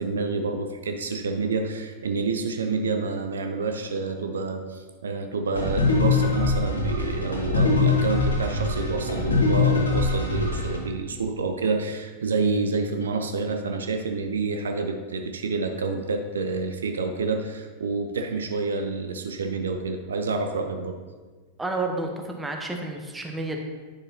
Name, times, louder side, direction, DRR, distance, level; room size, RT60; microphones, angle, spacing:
voice 1, 0.0-21.0, right 4 dB, 70° right, 5 dB, 0.5 m, -28 dB
sound 1, 5.5-10.8, left 3 dB, 75° left, 1.4 m, -23 dB
voice 2, 21.6-23.6, right 2 dB, 10° right, 3 dB, 1.0 m, -30 dB
9.5 x 6.7 x 2.8 m, 1.4 s
figure-of-eight pair, 90°, 0 cm